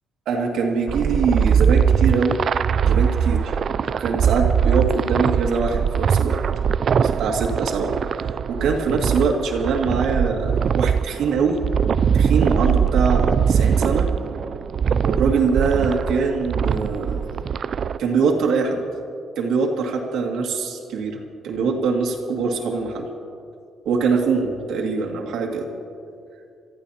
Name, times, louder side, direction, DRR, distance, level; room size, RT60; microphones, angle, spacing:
voice 1, 0.3-2.4 2.8-6.4 7.2-11.6 12.1-14.1 15.0-17.3 18.0-18.8 19.4-23.1 23.9-25.7, right 5 dB, 80° right, 1 dB, 2.2 m, -23 dB
sound 1, 0.9-18.0, right 7 dB, 50° right, 0.3 m, -21 dB
28.5 x 14.5 x 2.9 m, 2.4 s
cardioid pair, 105°, 0 cm